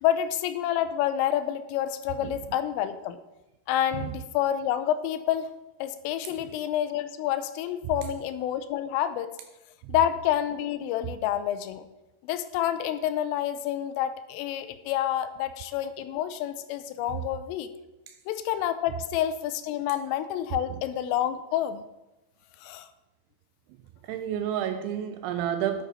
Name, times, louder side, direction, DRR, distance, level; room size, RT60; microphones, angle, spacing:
voice 1, 0.0-3.2 3.7-5.5 5.8-9.3 9.9-11.9 12.2-17.7 18.3-21.8 22.6-22.9, left 11 dB, 90° left, 11 dB, 3.2 m, -28 dB
voice 2, 24.0-25.8, right 10 dB, 85° right, 8 dB, 2.7 m, -30 dB
9.8 x 8.8 x 4.1 m, 0.98 s
omnidirectional pair, 5.7 m